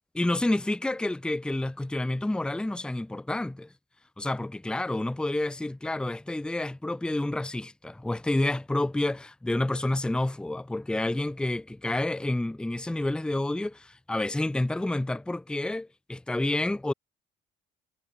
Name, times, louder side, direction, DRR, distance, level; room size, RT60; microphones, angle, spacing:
voice 1, 0.1-3.7 4.2-16.9, left 1 dB, 5° left, 0.6 m, -29 dB
cardioid pair, 110°, 17 cm